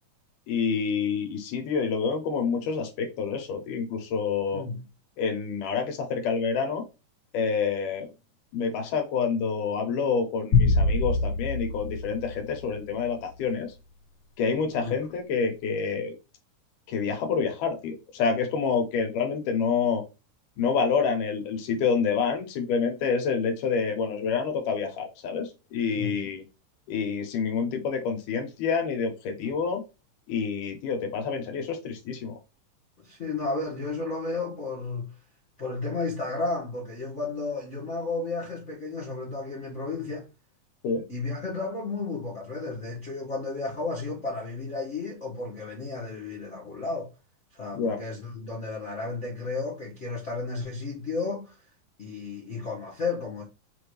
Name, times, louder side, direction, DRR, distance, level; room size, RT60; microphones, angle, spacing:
voice 1, 0.5-4.6 5.2-6.8 7.3-8.1 8.5-13.7 14.4-16.1 16.9-20.0 20.6-26.4 26.9-29.8 30.3-32.4 40.8-41.0 47.7-48.0, left 5 dB, 80° left, 2.5 m, -28 dB
voice 2, 4.5-4.9 14.8-15.0 25.9-26.2 33.0-35.1 35.6-40.3 41.1-47.1 47.5-51.7 52.0-53.4, left 3 dB, 65° left, 0.7 m, -33 dB
sound 1, 10.5-13.0, left 3 dB, 45° left, 1.7 m, -24 dB
5.9 x 2.6 x 3.1 m
omnidirectional pair, 3.7 m